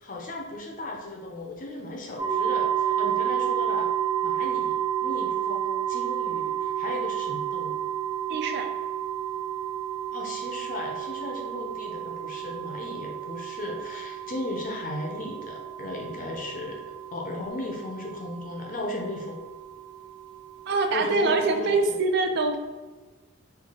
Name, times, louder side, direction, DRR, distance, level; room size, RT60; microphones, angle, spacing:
voice 1, 0.0-3.9 4.2-7.8 10.1-16.8 17.1-19.4 20.9-21.8, left 2 dB, 40° left, 0 dB, 0.5 m, -36 dB
sound 1, 2.2-21.8, right 10 dB, 25° right, 0.8 m, -31 dB
voice 2, 8.3-8.7 20.7-22.6, right 3 dB, 50° right, 5 dB, 0.3 m, -24 dB
3.3 x 2.3 x 3.6 m, 1.3 s
head